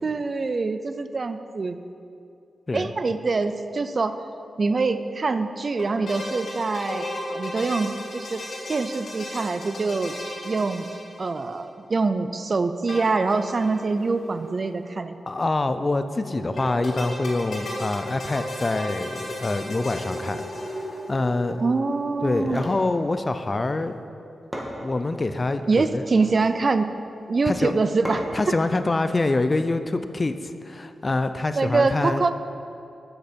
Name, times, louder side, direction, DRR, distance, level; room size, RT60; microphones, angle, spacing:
voice 1, 0.0-1.8 2.7-4.2 4.6-8.4 8.7-10.2 10.4-10.9 11.2-15.2 21.6-22.6 25.7-26.9 27.3-28.5 31.6-32.3, right 3 dB, 45° right, 10 dB, 0.4 m, -24 dB
sound 1, 5.8-11.6 12.9-13.7 14.0-14.1 14.3-14.4 16.6-21.1, left 1 dB, 70° left, 2.1 m, -35 dB
sound 2, 12.8-22.7, equal, 15° left, 1.8 m, -39 dB
voice 2, 15.3-21.6 22.2-24.0 24.8-26.0 27.5-27.7 28.3-30.4 30.6-32.2, left 2 dB, 35° left, 10 dB, 0.4 m, -25 dB
sound 3, 22.2-22.8 24.1-24.2 24.5-25.3 26.0-26.4 28.0-28.5, equal, 10° right, 1.6 m, -34 dB
7.9 x 6.4 x 5.2 m, 2.6 s
cardioid pair, 70°, 0 cm